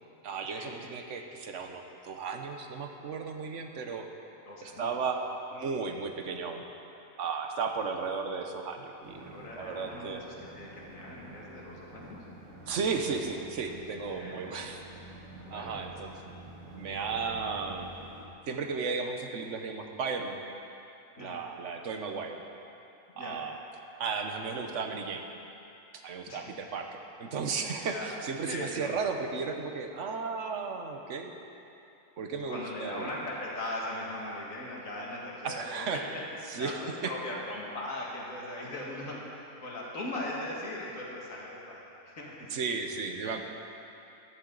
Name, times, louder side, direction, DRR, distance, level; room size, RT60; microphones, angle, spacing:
voice 1, 0.2-4.1 4.6-5.2 5.5-6.7 7.2-10.2 12.6-14.8 15.5-16.1 16.7-17.9 18.5-20.4 21.2-22.4 23.2-23.6 24.0-25.3 26.0-31.4 32.2-33.1 35.4-36.0 36.5-37.1 42.5-43.4, right 5 dB, 65° right, 4 dB, 1.2 m, -34 dB
voice 2, 4.5-4.9 9.2-12.2 14.1-14.7 15.4-15.9 21.2-21.4 23.1-23.4 26.3-26.5 27.9-28.1 28.5-29.0 32.5-36.2 36.5-42.7, left 1 dB, 70° left, -4 dB, 2.4 m, -39 dB
sound 1, 9.0-18.3, right 2 dB, 85° right, 1.9 m, -49 dB
14.0 x 11.5 x 3.9 m, 2.9 s
omnidirectional pair, 1.4 m